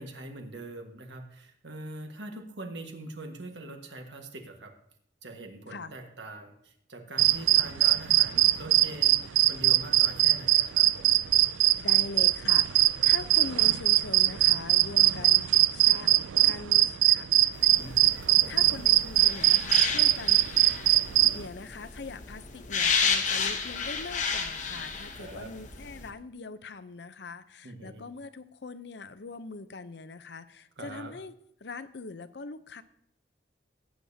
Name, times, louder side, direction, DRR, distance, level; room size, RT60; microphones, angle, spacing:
voice 1, 0.0-4.7 5.2-11.2 17.8-18.6 25.1-25.5 27.6-28.0 30.8-31.1, right 2 dB, 70° right, 4 dB, 1.5 m, -43 dB
sound 1, 7.2-21.5, right 15 dB, 85° right, 0.3 m, -22 dB
voice 2, 11.8-16.1 16.4-17.3 17.8-18.0 18.5-20.7 21.3-31.3 31.6-32.8, left 3 dB, 65° left, 13 dB, 0.6 m, -42 dB
sound 2, 17.5-26.1, left 5 dB, 40° left, 1.0 m, -32 dB
17.0 x 8.9 x 2.8 m, 0.69 s
head